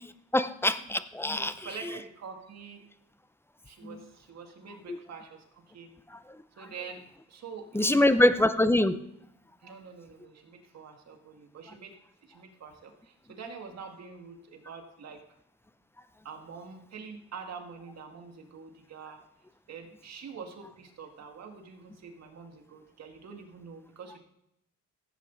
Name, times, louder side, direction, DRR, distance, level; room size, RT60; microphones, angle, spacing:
voice 1, 0.3-1.5 1.8-2.0 3.8-4.0 4.9-5.0 6.1-6.2 7.7-9.0, left 1 dB, 10° left, 13 dB, 0.6 m, -24 dB
voice 2, 1.3-2.9 3.7-6.0 6.6-7.0 7.3-8.3 9.6-11.9 12.3-15.2 16.2-19.2 19.7-24.2, right 5 dB, 60° right, 4 dB, 1.9 m, -45 dB
15.5 x 8.1 x 3.9 m, 0.79 s
cardioid pair, 90°, 30 cm